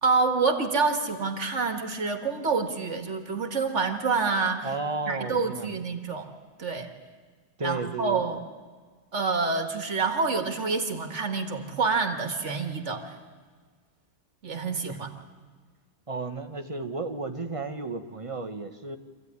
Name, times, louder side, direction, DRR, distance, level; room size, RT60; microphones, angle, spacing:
voice 1, 0.0-4.7 5.1-6.3 6.6-6.9 7.6-8.4 9.1-13.1 14.4-15.1, right 4 dB, 80° right, 6 dB, 2.0 m, -27 dB
voice 2, 4.6-5.7 7.6-8.3 14.9-15.1 16.1-19.0, right 3 dB, 30° right, 7 dB, 1.4 m, -33 dB
25.5 x 15.0 x 9.7 m, 1.5 s
omnidirectional pair, 1.2 m